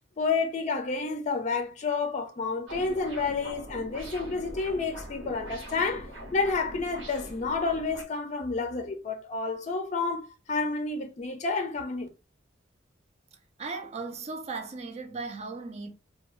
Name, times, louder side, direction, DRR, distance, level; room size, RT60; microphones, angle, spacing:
voice 1, 0.2-12.1, left 4 dB, 40° left, 0.4 m, -30 dB
sound 1, 2.7-8.0, equal, 70° right, 1.0 m, -42 dB
voice 2, 13.6-15.9, right 4 dB, 35° right, 0.5 m, -37 dB
2.6 x 2.2 x 3.0 m
head